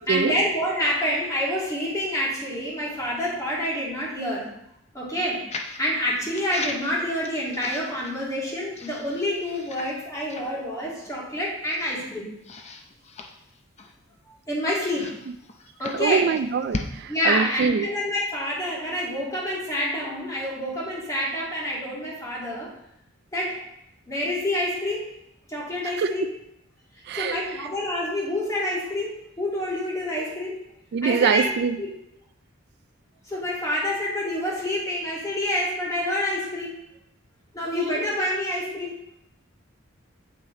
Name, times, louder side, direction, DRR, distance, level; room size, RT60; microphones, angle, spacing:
voice 1, 0.0-4.5 4.9-12.3 14.2-15.1 15.8-16.3 17.1-22.7 23.3-23.6 24.1-25.0 25.5-26.3 27.1-30.5 31.0-31.5 31.8-31.9 33.3-36.7 37.5-38.9, left 1 dB, 15° left, -5 dB, 2.4 m, -27 dB
sound 1, 5.5-5.9 6.3-8.4 8.7-10.0 10.3-10.5 11.1-11.2 11.6-12.1 12.4-14.1 14.8-16.9, left 3 dB, 35° left, 0.6 m, -37 dB
voice 2, 15.9-17.9 25.8-26.1 27.1-27.4 30.9-31.8, right 6 dB, 55° right, 10 dB, 0.3 m, -24 dB
7.9 x 6.0 x 3.8 m, 0.80 s
head